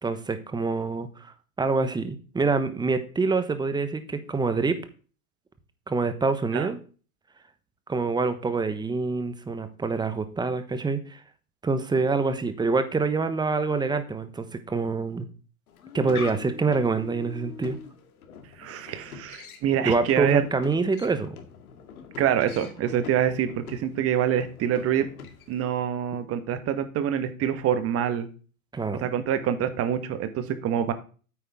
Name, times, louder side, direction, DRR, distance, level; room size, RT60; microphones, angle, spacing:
voice 1, 0.0-4.8 5.9-6.8 7.9-11.2 11.6-15.3 15.9-17.8 19.8-21.4 28.7-29.0, right 4 dB, 10° right, 11 dB, 1.1 m, -26 dB
sound 1, 15.7-25.7, left 6 dB, 75° left, 2.2 m, -43 dB
voice 2, 18.6-20.5 22.2-25.1 25.5-28.3 28.9-30.9, right 9 dB, 30° right, 10 dB, 1.4 m, -26 dB
9.2 x 8.4 x 3.6 m, 0.37 s
hypercardioid pair, 110°, 44 cm